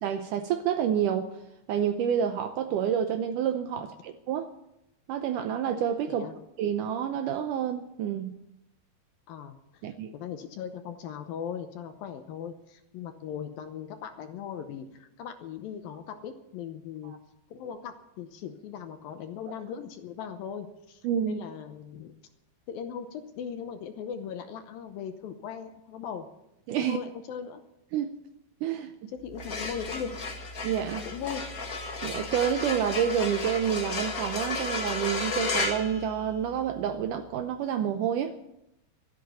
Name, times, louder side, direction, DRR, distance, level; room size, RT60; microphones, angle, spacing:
voice 1, 0.0-1.3 1.7-4.5 5.1-6.3 6.6-8.4 9.8-10.1 17.0-17.2 21.0-21.4 26.7-27.0 27.9-28.1 28.6-29.1 30.6-31.1 32.0-38.4, right 9 dB, 85° right, 1.8 m, -28 dB
voice 2, 10.1-17.2 17.5-22.1 22.7-26.3 26.9-27.6 29.1-30.2 31.1-31.5, left 7 dB, 70° left, 2.4 m, -39 dB
sound 1, 29.3-36.7, left 3 dB, 90° left, 0.7 m, -33 dB
13.0 x 11.0 x 9.3 m
omnidirectional pair, 4.7 m